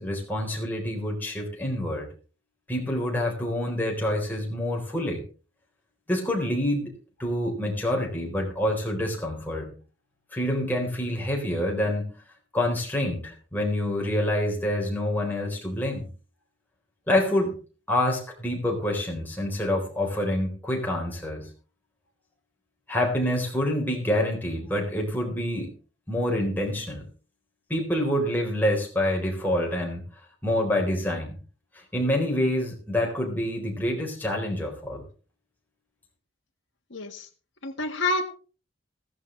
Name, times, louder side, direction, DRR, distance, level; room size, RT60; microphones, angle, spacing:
voice 1, 0.0-2.1 2.7-5.2 6.1-6.9 7.2-9.7 10.3-12.1 12.5-16.1 17.1-17.6 17.9-21.5 22.9-25.7 26.1-27.0 27.7-30.0 30.4-31.3 31.9-35.0, left 1 dB, 10° left, -1 dB, 4.1 m, -27 dB
voice 2, 36.9-37.3 37.6-38.3, left 2 dB, 65° left, 0 dB, 1.7 m, -28 dB
15.5 x 14.5 x 3.3 m, 0.37 s
head